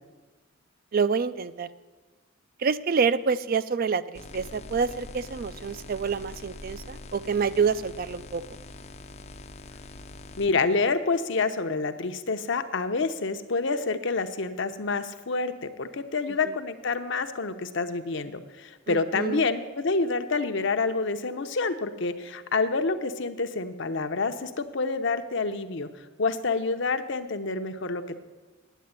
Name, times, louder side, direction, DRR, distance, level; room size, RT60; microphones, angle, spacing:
voice 1, 0.9-1.7 2.6-8.4 16.4-16.5 18.9-19.4, right 5 dB, 45° right, 15 dB, 0.4 m, -27 dB
sound 1, 4.1-10.5, left 2 dB, 30° left, 0.5 m, -43 dB
voice 2, 10.4-25.9 26.2-28.2, left 4 dB, 60° left, 9 dB, 0.8 m, -28 dB
9.2 x 8.5 x 9.6 m, 1.3 s
head